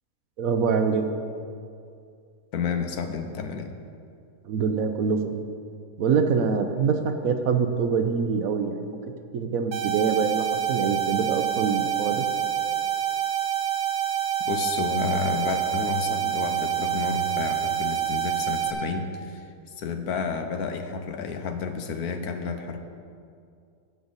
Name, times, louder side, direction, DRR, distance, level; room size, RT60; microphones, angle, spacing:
voice 1, 0.4-1.1 4.5-5.4 6.0-9.0 9.3-12.3, right 5 dB, 65° right, 7 dB, 1.0 m, -25 dB
voice 2, 2.5-3.7 14.5-19.5 19.8-22.8, left 5 dB, 70° left, 6 dB, 1.3 m, -30 dB
sound 1, 9.7-18.7, right 10 dB, 85° right, 1.5 m, -27 dB
14.0 x 8.3 x 4.0 m, 2.4 s
omnidirectional pair, 1.7 m